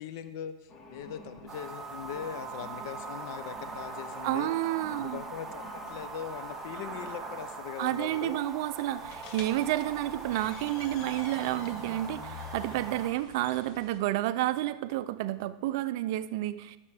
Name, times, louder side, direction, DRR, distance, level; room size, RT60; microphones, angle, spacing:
voice 1, 0.0-4.5 4.9-8.4, left 9 dB, 65° left, 12 dB, 0.5 m, -41 dB
sound 1, 0.7-7.6, equal, 30° left, 1.4 m, -51 dB
sound 2, 1.5-13.1, right 4 dB, 15° right, 1.0 m, -41 dB
voice 2, 4.2-5.2 7.8-16.8, right 15 dB, 60° right, 14 dB, 0.4 m, -30 dB
sound 3, 9.0-14.0, left 6 dB, 50° left, 1.0 m, -47 dB
12.0 x 6.7 x 3.4 m, 1.1 s
hypercardioid pair, 120°, 2 cm